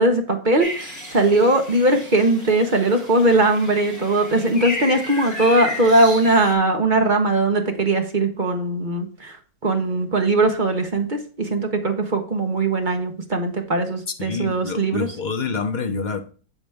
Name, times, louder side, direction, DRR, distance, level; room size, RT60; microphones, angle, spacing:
voice 1, 0.0-9.4 9.6-15.1, right 2 dB, 35° right, 4 dB, 1.0 m, -20 dB
sound 1, 0.6-6.5, left 1 dB, 10° left, 2.0 m, -33 dB
voice 2, 14.2-16.2, left 4 dB, 75° left, 5 dB, 0.4 m, -27 dB
7.8 x 7.1 x 3.5 m, 0.40 s
omnidirectional pair, 2.0 m